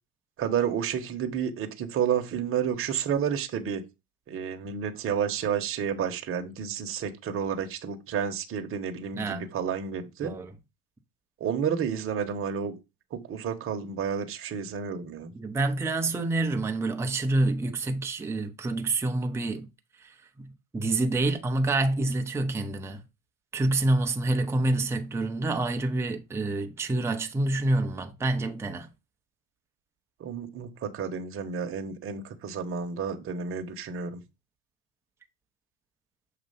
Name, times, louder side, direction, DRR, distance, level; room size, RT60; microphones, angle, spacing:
voice 1, 0.4-3.8 4.3-10.3 11.4-12.8 13.1-15.3 30.2-34.2, right 7 dB, 30° right, 1.1 m, -30 dB
voice 2, 9.1-9.5 10.2-10.5 15.3-19.7 20.0-20.1 20.4-20.5 20.7-23.0 23.5-28.9, right 2 dB, 5° right, 0.6 m, -27 dB
6.7 x 2.8 x 5.5 m
hypercardioid pair, 105°, 45 cm